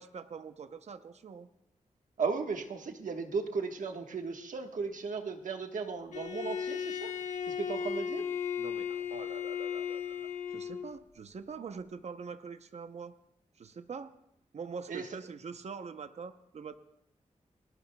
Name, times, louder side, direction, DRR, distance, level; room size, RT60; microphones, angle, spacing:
voice 1, 0.0-1.5 8.6-13.2 13.6-14.1 14.5-16.7, right 5 dB, 60° right, 10 dB, 0.7 m, -44 dB
voice 2, 2.2-7.1 7.5-8.2 14.9-15.1, right 5 dB, 80° right, 4 dB, 1.3 m, -36 dB
Bowed string instrument, 6.1-10.9, left 7 dB, 65° left, 1.3 m, -36 dB
29.5 x 20.0 x 2.3 m, 0.80 s
wide cardioid pair, 175°, 13 cm